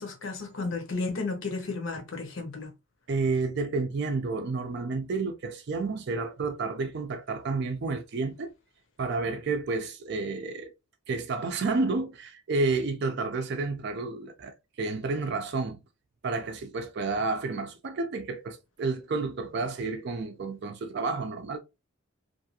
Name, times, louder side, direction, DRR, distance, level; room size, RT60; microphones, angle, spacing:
voice 1, 0.0-2.7, left 3 dB, 60° left, 0.8 m, -33 dB
voice 2, 3.1-8.5 9.0-10.7 11.1-15.8 16.2-21.6, right 3 dB, 50° right, 0.4 m, -30 dB
2.6 x 2.3 x 2.7 m
head